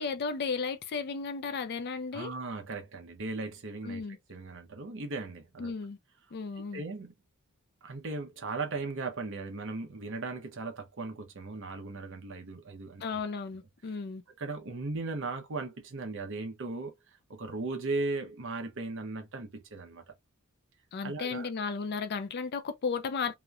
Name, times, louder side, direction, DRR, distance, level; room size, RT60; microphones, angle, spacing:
voice 1, 0.0-2.3 3.8-4.2 5.6-6.0 6.3-6.8 13.0-14.2 20.9-23.3, left 5 dB, 50° left, 0.4 m, -34 dB
voice 2, 2.1-4.0 4.3-5.7 6.7-7.1 7.8-13.2 14.4-16.9 17.3-20.0 21.0-21.5, right 3 dB, 60° right, 0.8 m, -37 dB
3.0 x 2.1 x 2.3 m
head